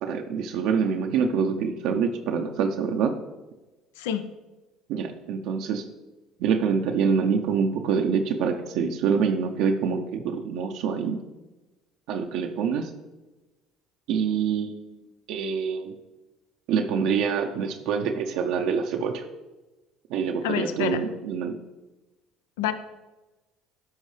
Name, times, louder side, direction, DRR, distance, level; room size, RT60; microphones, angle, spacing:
voice 1, 0.0-3.1 4.9-5.8 6.4-11.2 12.1-12.9 14.1-15.0 15.3-16.0 16.7-19.3 20.1-21.6, right 6 dB, 75° right, 3 dB, 0.6 m, -26 dB
voice 2, 20.4-21.0 22.6-22.7, left 10 dB, 90° left, 11 dB, 0.5 m, -27 dB
12.0 x 4.5 x 3.3 m, 1.1 s
supercardioid pair, 80°, 0 cm